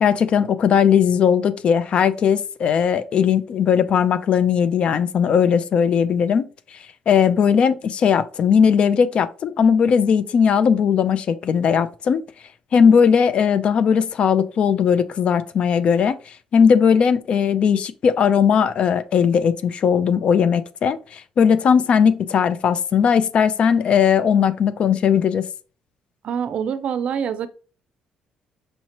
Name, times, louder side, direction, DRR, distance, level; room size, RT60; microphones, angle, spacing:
voice 1, 0.0-6.5 7.1-12.2 12.7-25.4, left 7 dB, 50° left, 0.4 m, -18 dB
voice 2, 26.2-27.5, right 7 dB, 60° right, 0.4 m, -25 dB
5.4 x 2.8 x 2.9 m
cardioid pair, 110°, 2 cm